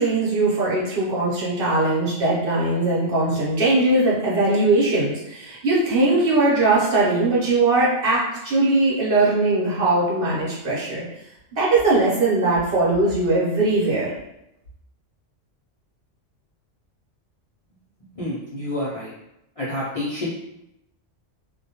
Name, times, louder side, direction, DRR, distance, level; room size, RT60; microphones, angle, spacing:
voice 1, 0.0-11.0 11.6-14.1, right 2 dB, 55° right, -6 dB, 1.0 m, -20 dB
voice 2, 18.1-19.1 19.6-20.3, left 1 dB, 55° left, -8 dB, 0.3 m, -28 dB
2.2 x 2.2 x 2.8 m, 0.85 s
omnidirectional pair, 1.2 m